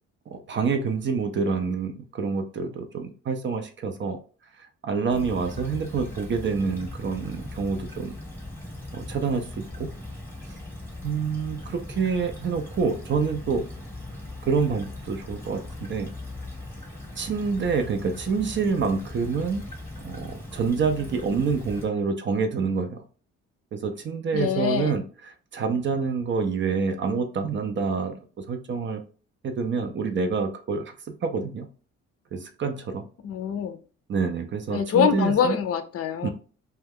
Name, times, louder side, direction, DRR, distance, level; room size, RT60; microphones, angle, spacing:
voice 1, 0.3-4.2 4.6-8.2 8.9-9.9 11.0-13.6 14.4-16.1 17.2-19.7 20.0-23.0 23.7-29.0 29.4-31.7 32.3-33.1 34.1-35.6 36.2-36.3, right 5 dB, 40° right, 6 dB, 0.4 m, -27 dB
Stream / Trickle dribble, 5.1-21.8, left 1 dB, 5° left, 1.0 m, -39 dB
voice 2, 24.3-24.9 33.2-33.8 34.7-36.3, left 7 dB, 50° left, 10 dB, 0.5 m, -24 dB
2.3 x 2.2 x 3.4 m, 0.38 s
cardioid pair, 90°, 30 cm